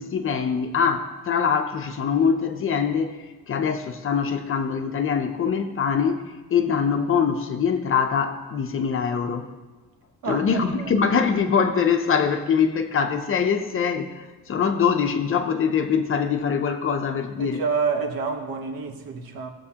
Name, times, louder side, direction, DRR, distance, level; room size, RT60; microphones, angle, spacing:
voice 1, 0.0-3.2 3.5-9.5 10.3-17.6, left 6 dB, 35° left, 6 dB, 0.5 m, -23 dB
voice 2, 17.4-19.5, right 5 dB, 65° right, 4 dB, 1.1 m, -28 dB
15.5 x 7.5 x 2.8 m, 1.3 s
cardioid pair, 180°, 37 cm